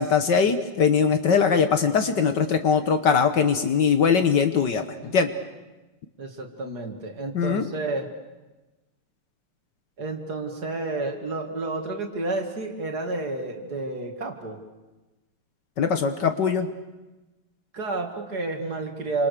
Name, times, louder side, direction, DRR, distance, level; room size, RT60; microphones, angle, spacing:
voice 1, 0.0-5.3 7.3-7.7 15.8-16.7, left 6 dB, 55° left, 8 dB, 1.7 m, -21 dB
voice 2, 6.2-8.1 10.0-14.6 17.7-19.3, right 2 dB, 45° right, 4 dB, 2.8 m, -30 dB
28.0 x 26.0 x 6.8 m, 1.1 s
omnidirectional pair, 2.4 m